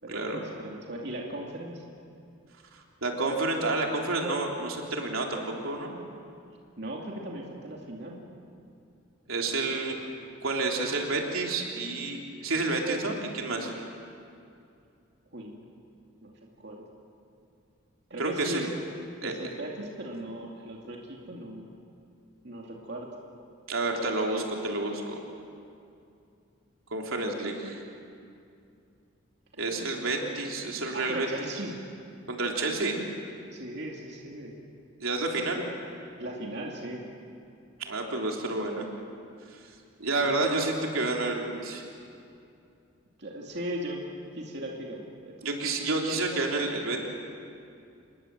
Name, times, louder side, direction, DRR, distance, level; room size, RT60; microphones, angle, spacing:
voice 1, 0.0-1.8 6.8-8.2 15.3-15.5 16.2-16.8 18.1-18.7 19.2-21.7 22.4-23.1 29.6-30.2 30.9-31.8 33.5-34.5 36.2-37.0 40.2-40.6 43.2-44.0 44.3-45.5, right 1 dB, 55° right, -1 dB, 2.6 m, -38 dB
voice 2, 2.7-5.9 9.3-10.0 10.4-13.7 18.2-18.7 19.2-19.3 23.7-25.1 26.9-27.8 29.6-31.3 32.3-33.0 35.0-35.6 37.8-38.8 39.5-39.6 40.0-41.8 45.4-47.1, right 2 dB, 85° right, 0 dB, 3.4 m, -29 dB
27.0 x 21.5 x 7.6 m, 2.5 s
head